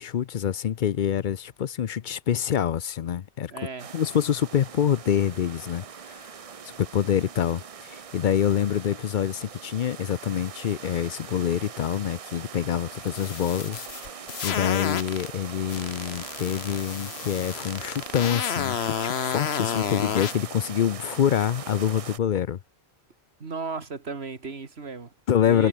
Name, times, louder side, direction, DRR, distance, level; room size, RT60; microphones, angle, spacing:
voice 1, 0.0-3.5 3.9-6.2 6.8-13.8 14.4-22.6 25.3-25.7, left 9 dB, 55° left, 0.7 m, -26 dB
voice 2, 3.5-4.0 23.4-25.1 25.4-25.7, right 4 dB, 80° right, 2.3 m, -35 dB
sound 1, 3.8-22.2, right 7 dB, 40° right, 0.6 m, -41 dB
sound 2, 13.1-15.3 15.7-20.3, left 8 dB, 75° left, 1.2 m, -31 dB
omnidirectional pair, 1.1 m